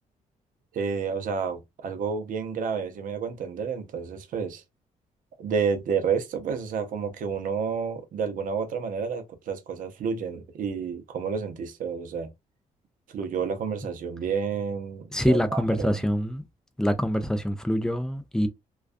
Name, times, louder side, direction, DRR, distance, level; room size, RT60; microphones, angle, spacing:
voice 1, 0.7-4.6 5.4-12.3 13.1-16.1, right 6 dB, 65° right, 0.6 m, -30 dB
voice 2, 15.1-16.4 16.8-18.5, equal, 5° left, 0.3 m, -25 dB
2.3 x 2.3 x 2.4 m
cardioid pair, 120°, 15 cm